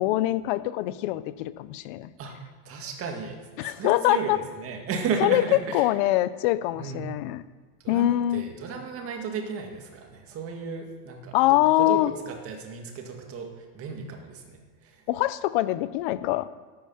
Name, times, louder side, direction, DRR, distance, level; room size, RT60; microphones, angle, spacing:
voice 1, 0.0-2.1 3.6-4.4 5.2-5.4 5.7-7.4 7.9-8.4 11.3-12.1 15.1-16.5, left 15 dB, 35° left, 15 dB, 0.4 m, -24 dB
voice 2, 2.7-5.8 6.8-7.0 7.8-12.0 12.3-13.5 13.7-14.6 14.8-15.0, right 5 dB, 30° right, 3 dB, 1.9 m, -34 dB
12.5 x 8.6 x 5.6 m, 1.4 s
supercardioid pair, 150°, 47 cm